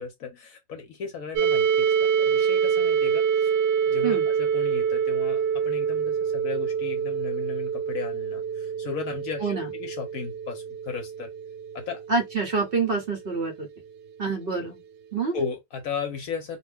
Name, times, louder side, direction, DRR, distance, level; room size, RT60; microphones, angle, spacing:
voice 1, 0.0-3.5 3.8-11.3 11.7-12.0 15.3-16.6, left 5 dB, 65° left, 1.0 m, -35 dB
sound 1, 1.4-13.1, right 7 dB, 90° right, 1.2 m, -26 dB
voice 2, 12.1-13.7 14.2-14.8 15.1-15.4, right 4 dB, 50° right, 0.7 m, -26 dB
2.7 x 2.2 x 3.3 m
omnidirectional pair, 1.9 m